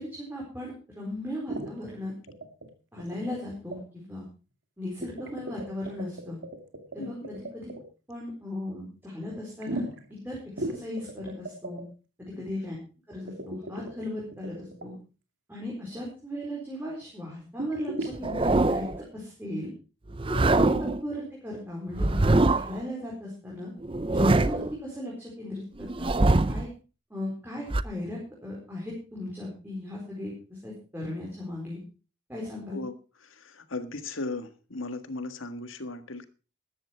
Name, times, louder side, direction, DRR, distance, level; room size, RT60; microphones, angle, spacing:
voice 1, 0.0-2.1 2.9-4.2 4.8-6.4 6.9-7.7 8.1-9.8 10.2-11.8 12.2-12.8 13.1-14.9 15.5-19.7 20.3-20.7 21.0-23.7 24.1-26.7 27.1-31.8 32.3-32.8, left 1 dB, 10° right, -4 dB, 4.4 m, -37 dB
sound 1, 1.5-1.7 2.3-2.7 3.0-3.4 3.7-3.8 5.0-7.8 9.6-10.1 10.6-11.8 13.3-14.9 17.6-18.5, right 1 dB, 75° right, 2.4 m, -37 dB
voice 2, 7.0-7.3 12.3-12.4 32.7-36.3, left 2 dB, 85° left, 10 dB, 1.6 m, -37 dB
sound 2, 18.1-19.0 20.1-21.0 21.9-22.8 23.8-24.8 25.8-26.7 27.7-27.8, right 2 dB, 25° right, 0.6 m, -23 dB
13.5 x 11.5 x 4.6 m, 0.34 s
head